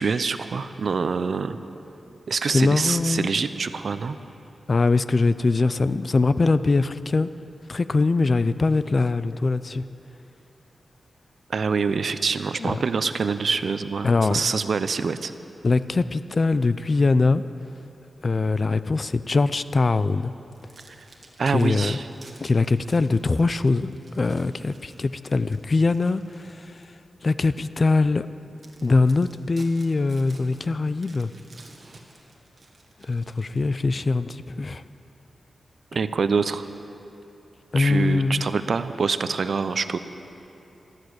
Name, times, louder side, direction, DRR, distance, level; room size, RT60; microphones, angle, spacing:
voice 1, 0.0-1.6 2.3-4.2 11.5-15.3 20.9-21.1 21.4-22.1 35.9-36.7 37.8-40.0, right 5 dB, 65° right, 12 dB, 0.6 m, -25 dB
voice 2, 2.5-3.3 4.7-7.3 7.7-9.8 12.6-12.8 14.0-14.4 15.6-17.4 18.2-20.3 21.5-22.0 22.4-26.2 27.2-28.3 28.8-31.3 33.1-34.8 37.7-38.4, left 3 dB, 40° left, 14 dB, 0.4 m, -22 dB
sound 1, 20.5-27.0 27.5-27.7 28.2-28.3 28.6-34.1, right 3 dB, 45° right, 1.8 m, -53 dB
13.5 x 13.0 x 8.0 m, 2.9 s
wide cardioid pair, 95°, 0 cm